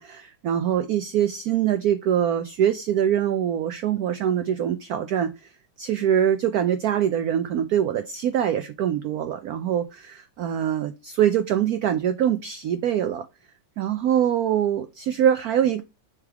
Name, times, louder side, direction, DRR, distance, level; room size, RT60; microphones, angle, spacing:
voice 1, 0.0-5.3 5.8-13.3 13.8-15.8, right 9 dB, 80° right, 0.8 m, -23 dB
7.2 x 3.4 x 4.6 m
omnidirectional pair, 2.2 m